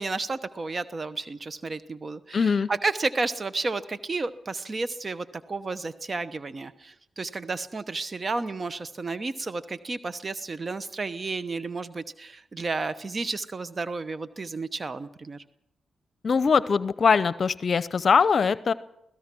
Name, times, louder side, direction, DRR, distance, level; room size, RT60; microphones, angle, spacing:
voice 1, 0.0-15.4, right 3 dB, 45° right, 14 dB, 1.0 m, -32 dB
voice 2, 2.3-2.7 16.2-18.7, left 5 dB, 55° left, 17 dB, 0.6 m, -22 dB
24.5 x 17.0 x 6.1 m, 0.82 s
supercardioid pair, 45°, 0 cm